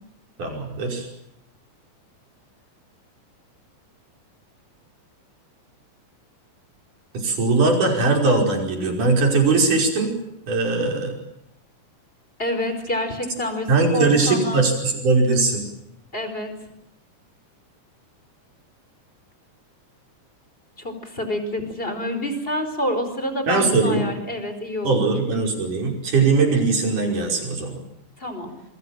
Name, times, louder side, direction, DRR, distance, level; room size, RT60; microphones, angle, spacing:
voice 1, 0.4-1.1 7.1-10.1 10.5-11.2 13.7-15.6 23.5-24.1 24.8-27.8, right 3 dB, 70° right, 2 dB, 6.8 m, -20 dB
voice 2, 12.4-14.6 16.1-16.5 20.8-25.2 28.2-28.5, left 1 dB, 15° left, 8 dB, 4.5 m, -27 dB
27.0 x 24.0 x 7.5 m, 0.80 s
omnidirectional pair, 3.7 m